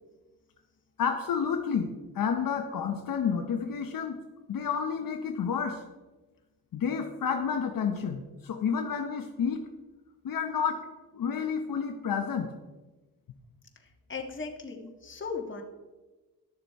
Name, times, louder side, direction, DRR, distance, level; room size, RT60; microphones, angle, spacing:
voice 1, 1.0-1.9 2.1-4.2 4.5-5.8 6.7-9.6 10.2-10.9 11.1-12.5, left 6 dB, 70° left, 4 dB, 1.0 m, -30 dB
voice 2, 14.1-15.6, left 4 dB, 35° left, 2 dB, 1.7 m, -37 dB
12.0 x 6.7 x 4.7 m, 1.2 s
cardioid pair, 95°, 35 cm